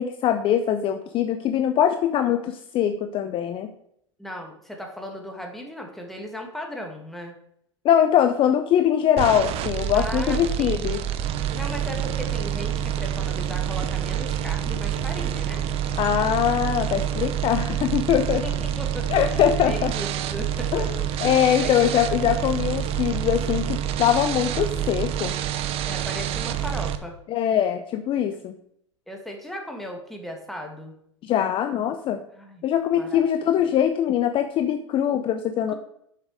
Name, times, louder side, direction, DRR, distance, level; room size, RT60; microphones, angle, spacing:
voice 1, 0.0-3.7 7.8-11.0 16.0-18.4 19.1-19.9 20.7-20.9 21.2-25.3 27.3-28.5 31.2-32.2 32.6-35.7, left 10 dB, 35° left, 8 dB, 0.6 m, -22 dB
voice 2, 4.2-7.3 9.9-10.9 11.5-15.7 18.4-20.9 21.2-21.9 25.9-27.2 28.3-28.4 29.1-30.9 32.3-32.6 33.0-33.3 33.6-33.8 35.7-35.8, equal, ahead, 2 dB, 1.9 m, -37 dB
sound 1, 9.2-27.0, right 10 dB, 40° right, 0.8 m, -27 dB
7.5 x 6.7 x 4.8 m, 0.72 s
hypercardioid pair, 90°, 16 cm